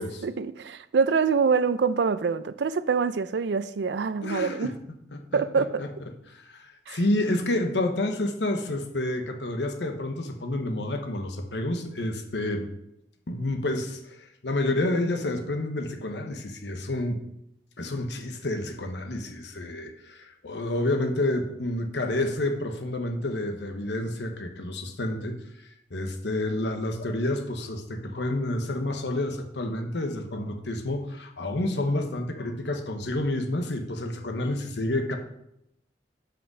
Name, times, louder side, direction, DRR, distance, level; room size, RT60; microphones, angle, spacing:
voice 1, 0.2-4.8 5.3-5.8 6.9-7.0, right 5 dB, 80° right, 0.4 m, -25 dB
voice 2, 4.2-4.7 5.1-5.9 6.3-12.7 13.3-17.2 17.8-25.3 25.9-35.2, left 1 dB, 85° left, 1.0 m, -29 dB
6.2 x 5.0 x 6.0 m
head